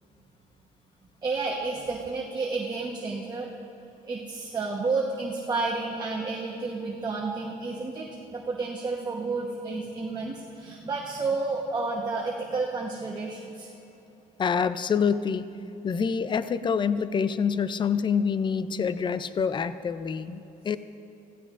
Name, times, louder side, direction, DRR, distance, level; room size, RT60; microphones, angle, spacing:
voice 1, 1.2-3.5 4.1-13.8, right 3 dB, 25° right, -2 dB, 1.1 m, -31 dB
voice 2, 14.4-15.5 15.8-20.8, left 6 dB, 30° left, 13 dB, 0.4 m, -26 dB
16.0 x 15.0 x 2.5 m, 2.9 s
cardioid pair, 110°, 17 cm